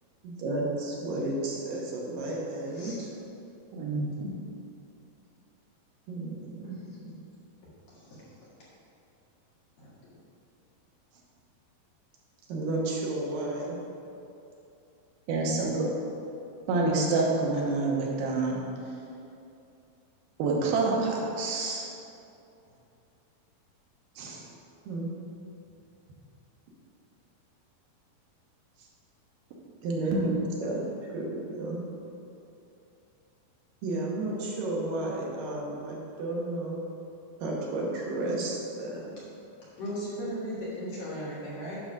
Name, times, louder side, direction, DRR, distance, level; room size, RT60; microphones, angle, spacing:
voice 1, 0.2-3.1 6.1-7.2 12.5-13.8 15.8-15.9 24.9-25.1 29.8-30.3 30.6-31.8 33.8-36.8 37.4-39.1, right 2 dB, 70° right, -3 dB, 2.8 m, -32 dB
voice 2, 2.7-3.0 6.6-6.9 7.9-8.5 9.8-9.9 39.8-41.8, equal, 55° left, -8 dB, 2.9 m, -37 dB
voice 3, 3.7-4.1 15.3-15.8 16.7-18.6 20.4-21.8 24.2-24.4 30.1-30.3, right 3 dB, 90° right, -2 dB, 3.0 m, -27 dB
9.9 x 4.0 x 6.1 m, 2.7 s
omnidirectional pair, 4.2 m